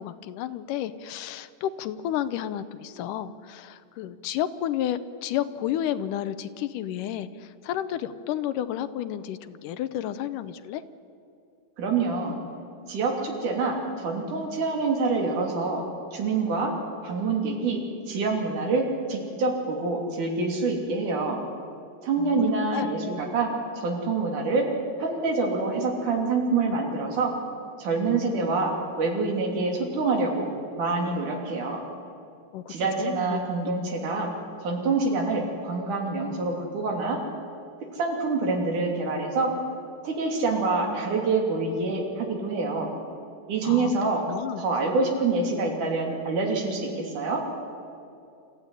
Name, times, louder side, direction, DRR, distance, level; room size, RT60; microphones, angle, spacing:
voice 1, 0.0-10.8 22.2-22.5 22.7-22.9 32.5-33.7 43.6-43.9 44.3-44.6, left 11 dB, 75° left, 13 dB, 2.2 m, -31 dB
voice 2, 11.8-12.4 12.9-15.8 16.1-16.7 17.0-21.4 22.0-23.5 23.8-24.7 25.0-27.3 27.8-31.8 32.7-34.3 34.6-37.2 37.9-39.5 40.0-42.9 43.5-44.2 44.6-47.4, right 3 dB, 60° right, 1 dB, 4.5 m, -26 dB
27.5 x 14.5 x 9.8 m, 2.5 s
omnidirectional pair, 4.0 m